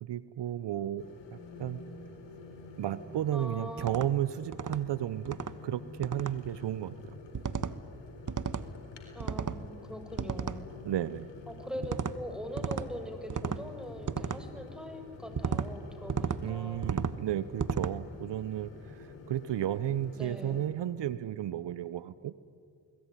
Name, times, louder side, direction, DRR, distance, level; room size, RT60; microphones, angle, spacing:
voice 1, 0.0-1.8 2.8-7.0 10.8-11.3 16.4-22.3, right 11 dB, 70° right, 16 dB, 0.8 m, -33 dB
sound 1, 1.0-20.7, left 4 dB, 85° left, 4.2 m, -48 dB
voice 2, 3.3-3.9 9.1-10.7 11.5-16.9 20.1-20.6, equal, ahead, 6 dB, 6.3 m, -42 dB
sound 2, 3.8-4.1 4.5-4.8 5.3-5.5 6.0-6.3 7.3-7.7 8.3-8.7 9.2-9.6 10.2-10.6 11.8-12.1 12.6-12.9 13.3-13.6 14.1-14.4 15.4-15.7 16.1-16.4 16.8-17.2 17.6-17.9, right 6 dB, 45° right, 1.4 m, -33 dB
29.5 x 20.5 x 9.9 m, 2.3 s
supercardioid pair, 40°, 43 cm